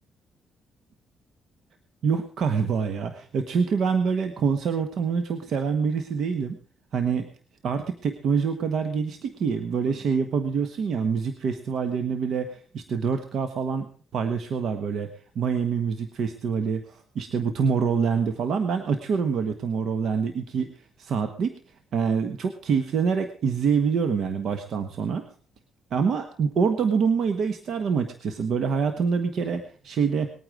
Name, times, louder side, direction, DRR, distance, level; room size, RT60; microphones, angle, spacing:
voice 1, 2.0-6.6 6.9-7.2 7.6-13.9 14.1-15.1 15.3-20.7 21.0-21.5 21.9-25.3 25.9-30.3, right 6 dB, 65° right, 8 dB, 1.3 m, -26 dB
20.0 x 9.2 x 4.8 m, 0.43 s
cardioid pair, 90°, 0 cm